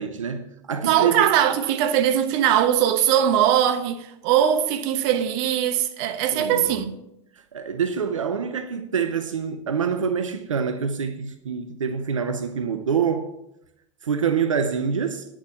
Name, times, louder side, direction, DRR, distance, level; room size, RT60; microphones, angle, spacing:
voice 1, 0.0-1.3 6.3-6.8 7.5-13.3 14.0-15.3, right 6 dB, 85° right, 0.8 m, -26 dB
voice 2, 0.8-7.0, right 10 dB, 55° right, 1.1 m, -21 dB
10.5 x 7.3 x 5.8 m
hypercardioid pair, 95°, 16 cm